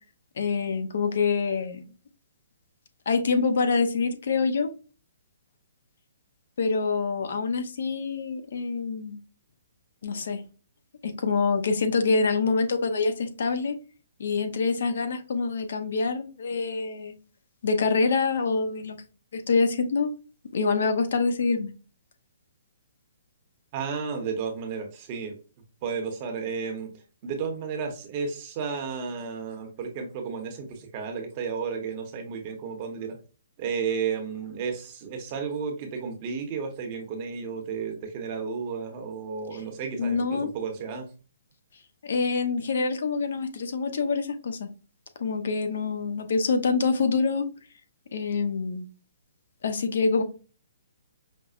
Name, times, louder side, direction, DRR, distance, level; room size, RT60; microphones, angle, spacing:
voice 1, 0.4-1.8 3.1-4.7 6.6-9.2 10.0-10.4 11.0-13.8 14.2-17.1 17.6-19.0 19.3-20.1 20.5-21.7 39.5-39.6 40.0-40.5 42.0-44.7 45.2-47.5 48.1-48.9 49.6-50.2, left 4 dB, 65° left, 0.7 m, -26 dB
voice 2, 23.7-25.3 25.8-26.9 27.2-33.2 33.6-40.2 40.5-41.1, right 6 dB, 30° right, 0.9 m, -32 dB
5.3 x 2.0 x 2.4 m
hypercardioid pair, 160°, 0 cm